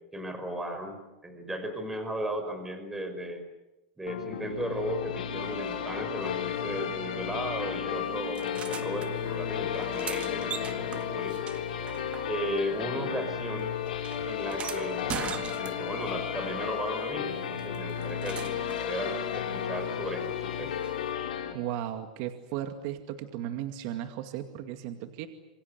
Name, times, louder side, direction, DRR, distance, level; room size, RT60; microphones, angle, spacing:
voice 1, 0.1-3.4 4.0-11.3 12.3-13.7 14.2-15.2 15.6-20.8, equal, 10° right, 7 dB, 5.3 m, -36 dB
sound 1, 4.1-21.5, left 8 dB, 85° left, 5.9 m, -33 dB
sound 2, 8.4-9.1 9.7-12.7 13.0-16.1 17.6-18.9 20.8-20.9, right 8 dB, 25° right, 1.8 m, -41 dB
voice 2, 21.5-25.3, right 11 dB, 55° right, 7 dB, 2.3 m, -35 dB
27.5 x 25.0 x 8.2 m, 1.0 s
supercardioid pair, 135°, 5 cm